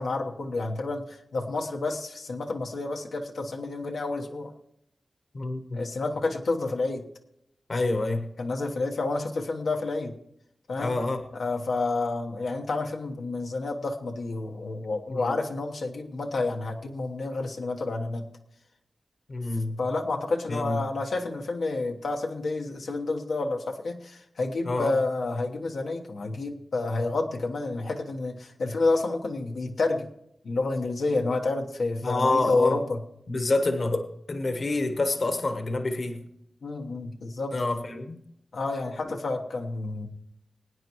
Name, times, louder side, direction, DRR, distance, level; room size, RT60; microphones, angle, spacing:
voice 1, 0.0-4.5 5.7-7.1 8.4-10.2 10.7-11.0 11.3-18.3 19.8-30.1 30.4-33.0 36.6-37.6 38.5-40.1, left 3 dB, 80° left, 1 dB, 1.1 m, -29 dB
voice 2, 5.3-5.8 7.7-8.3 10.8-11.2 15.1-15.3 19.3-19.8 20.5-20.8 24.6-24.9 32.0-32.8 33.3-36.2 37.5-38.2 39.1-39.2, left 2 dB, 45° left, 7 dB, 1.1 m, -27 dB
22.5 x 9.4 x 3.0 m, 0.76 s
wide cardioid pair, 125°, 0 cm